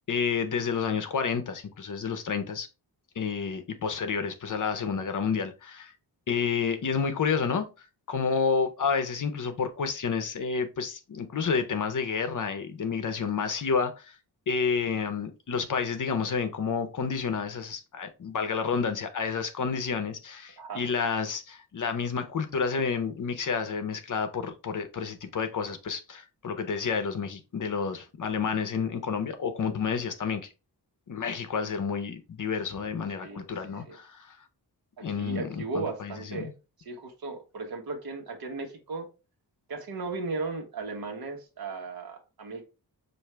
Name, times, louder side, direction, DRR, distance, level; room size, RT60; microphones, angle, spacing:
voice 1, 0.1-2.7 3.2-5.9 6.3-7.7 8.1-14.1 14.5-30.5 31.1-34.4 35.0-36.4, left 5 dB, 50° left, 0.7 m, -30 dB
voice 2, 35.0-36.5 36.8-39.1 39.7-42.7, right 3 dB, 60° right, 1.2 m, -36 dB
6.1 x 2.6 x 3.3 m
wide cardioid pair, 145°, 40 cm